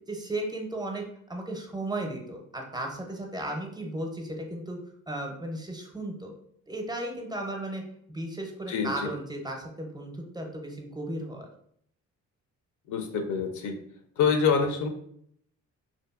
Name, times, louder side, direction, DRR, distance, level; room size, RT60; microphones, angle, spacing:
voice 1, 0.1-1.0 1.3-4.8 5.1-6.3 6.7-7.8 8.1-11.5, right 1 dB, 15° right, 1 dB, 0.5 m, -35 dB
voice 2, 8.7-9.1 12.9-13.8 14.2-14.9, left 6 dB, 80° left, 5 dB, 0.5 m, -26 dB
2.7 x 2.4 x 2.3 m, 0.67 s
cardioid pair, 90°, 30 cm